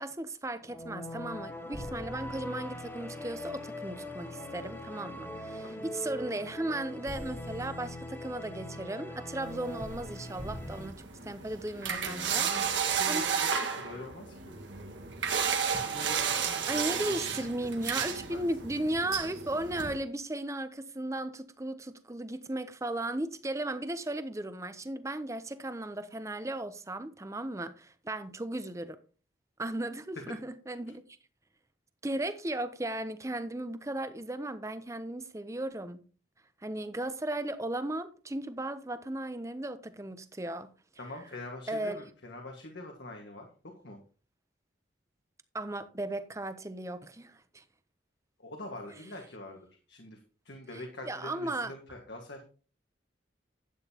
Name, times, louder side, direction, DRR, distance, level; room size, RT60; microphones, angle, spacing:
voice 1, 0.0-12.8 13.0-13.2 16.7-29.0 29.6-31.0 32.0-36.0 36.6-40.7 41.7-42.0 45.5-47.6 50.7-51.7, right 1 dB, 15° right, 0.6 m, -36 dB
sound 1, 0.6-10.9, left 1 dB, 10° left, 1.2 m, -41 dB
sound 2, 9.4-19.9, right 7 dB, 80° right, 1.6 m, -33 dB
voice 2, 11.8-14.4 15.7-17.5 17.8-18.4 41.0-43.5 43.8-44.0 48.4-50.2 50.4-52.4, left 2 dB, 70° left, 1.7 m, -44 dB
12.0 x 8.9 x 2.9 m
head